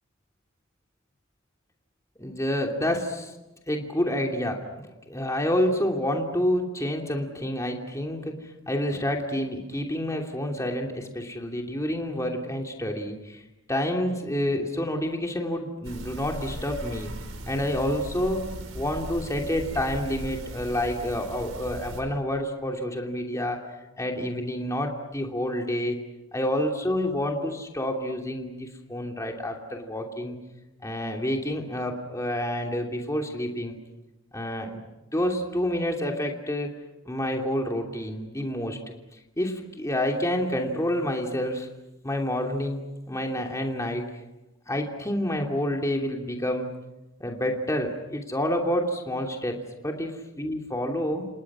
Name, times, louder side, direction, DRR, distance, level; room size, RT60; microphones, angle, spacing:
voice 1, 2.2-3.3 3.7-13.4 13.7-17.1 17.5-18.5 18.7-23.6 24.0-26.0 26.3-30.4 30.8-33.8 34.3-34.8 35.1-36.7 37.0-38.8 39.1-41.7 42.0-44.0 44.7-46.7 47.2-49.6 49.8-51.3, left 1 dB, 15° left, 1 dB, 2.9 m, -28 dB
sound 1, 15.8-22.0, right 1 dB, 85° right, 4.8 m, -38 dB
30.0 x 28.0 x 6.2 m, 0.99 s
head